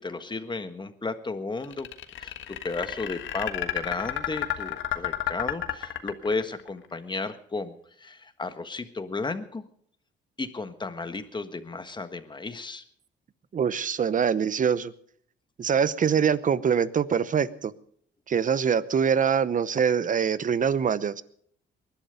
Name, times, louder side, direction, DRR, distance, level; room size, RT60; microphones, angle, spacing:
voice 1, 0.0-1.9 2.2-9.6 10.4-12.8, left 3 dB, 25° left, 10 dB, 1.5 m, -34 dB
sound 1, 1.6-6.7, left 12 dB, 75° left, 1.5 m, -31 dB
voice 2, 13.5-14.9 15.6-17.7 18.3-21.2, right 7 dB, 40° right, 17 dB, 0.8 m, -24 dB
20.5 x 11.5 x 5.2 m, 0.62 s
cardioid pair, 90°, 20 cm